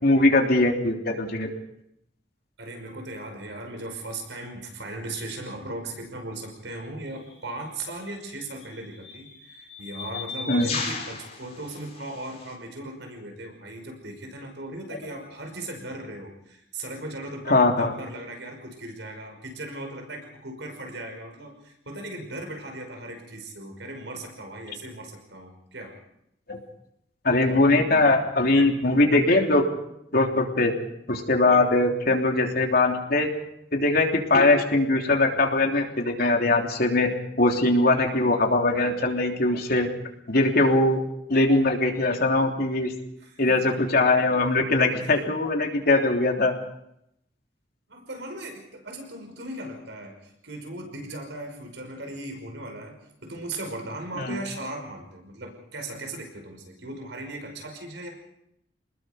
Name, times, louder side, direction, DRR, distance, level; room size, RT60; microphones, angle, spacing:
voice 1, 0.0-1.5 10.5-10.7 17.5-17.9 26.5-26.6 27.2-29.6 30.1-30.7 31.1-33.3 33.7-37.1 37.4-39.9 40.3-41.0 41.3-42.9 43.4-46.5 54.2-54.4, left 2 dB, 60° left, 2 dB, 3.4 m, -21 dB
voice 2, 2.6-26.0 43.2-43.7 47.9-58.1, right 1 dB, 85° right, 4 dB, 5.6 m, -38 dB
sound 1, 7.1-7.3 8.3-12.5, left 4 dB, 40° left, 6.0 m, -36 dB
29.0 x 20.5 x 5.2 m, 0.79 s
head